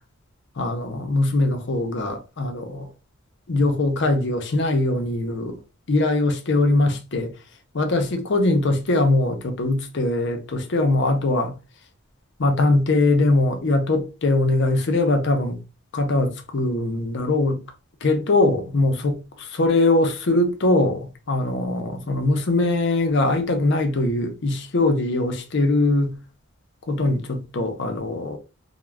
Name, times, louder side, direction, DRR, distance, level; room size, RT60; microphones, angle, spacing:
voice 1, 0.6-2.9 3.5-5.6 5.9-7.3 7.7-11.5 12.4-15.6 15.9-17.6 18.0-26.2 26.9-28.4, left 2 dB, 55° left, 0.6 m, -21 dB
2.3 x 2.1 x 3.2 m
head